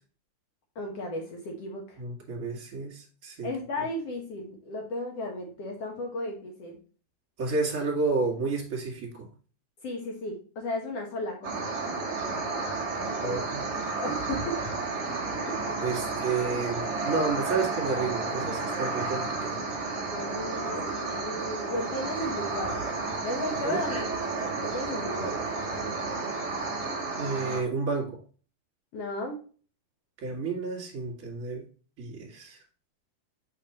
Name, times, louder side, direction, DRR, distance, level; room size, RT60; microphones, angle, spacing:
voice 1, 0.7-2.0 3.4-6.8 9.8-11.7 13.0-13.4 14.0-14.6 15.5-15.6 20.1-24.1 24.4-25.5 28.9-29.4, left 1 dB, 70° left, 1 dB, 1.4 m, -35 dB
voice 2, 2.0-3.5 7.4-9.3 13.2-13.6 15.8-19.6 23.6-23.8 27.2-28.2 30.2-31.7 32.0-32.6, right 4 dB, 30° right, -2 dB, 1.9 m, -31 dB
sound 1, 11.4-27.6, right 3 dB, 50° right, 1.2 m, -32 dB
7.3 x 5.3 x 3.0 m, 0.39 s
omnidirectional pair, 4.7 m